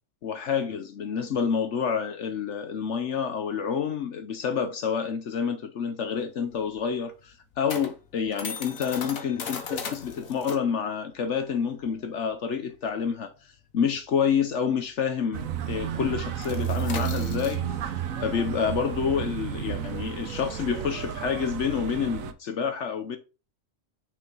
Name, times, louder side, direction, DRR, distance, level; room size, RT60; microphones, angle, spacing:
voice 1, 0.2-13.3 13.7-17.8 18.2-23.2, left 7 dB, 65° left, 1.0 m, -28 dB
sound 1, 6.2-15.1 15.4-15.7 15.9-21.7, left 5 dB, 80° left, 1.5 m, -39 dB
sound 2, 15.3-22.3, right 9 dB, 80° right, 1.2 m, -32 dB
6.2 x 5.4 x 4.0 m
omnidirectional pair, 1.4 m